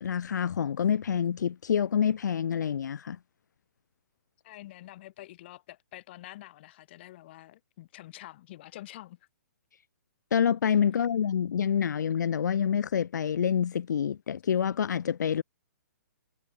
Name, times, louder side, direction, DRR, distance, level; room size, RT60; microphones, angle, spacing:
voice 1, 0.0-3.2 10.3-15.4, left 8 dB, 80° left, 0.4 m, -27 dB
voice 2, 4.4-9.2, left 16 dB, 35° left, 1.8 m, -47 dB
hypercardioid pair, 160°, 10 cm